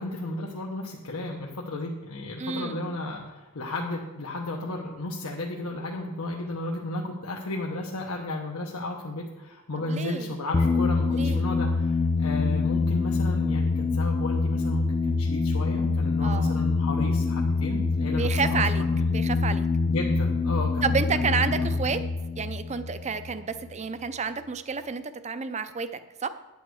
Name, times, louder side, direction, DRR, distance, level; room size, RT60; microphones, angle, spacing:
voice 1, 0.0-19.1 19.9-21.8, left 2 dB, 85° left, -1 dB, 1.0 m, -33 dB
voice 2, 2.4-2.9 9.9-10.3 11.1-11.5 16.2-16.6 18.2-18.8 19.1-19.7 20.8-22.0 22.4-26.3, right 5 dB, 30° right, 12 dB, 0.5 m, -30 dB
sound 1, 10.5-23.8, left 4 dB, 25° left, 0.5 m, -25 dB
9.3 x 8.6 x 4.8 m, 1.1 s
head